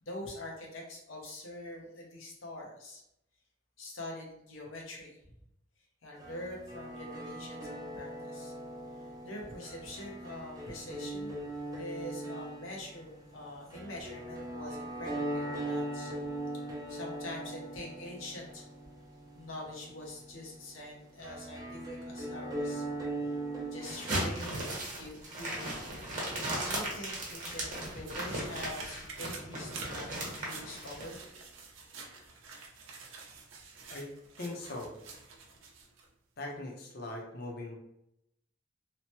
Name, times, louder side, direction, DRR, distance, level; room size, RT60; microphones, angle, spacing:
voice 1, 0.0-3.0 3.8-5.3 6.0-8.5 9.2-11.3 11.8-16.1 16.9-18.8 19.3-22.8 23.2-23.3 23.7-26.0 26.3-31.2, left 1 dB, 90° left, -1 dB, 0.8 m, -44 dB
sound 1, 6.2-24.2, right 1 dB, 20° right, 0.5 m, -40 dB
sound 2, 23.8-31.1, right 1 dB, 40° right, 1.0 m, -37 dB
sound 3, 27.3-36.1 36.5-36.6, right 4 dB, 80° right, 0.6 m, -49 dB
voice 2, 34.4-34.9 36.4-37.7, left 2 dB, 55° left, 1 dB, 0.7 m, -40 dB
3.0 x 2.1 x 3.0 m, 0.80 s
head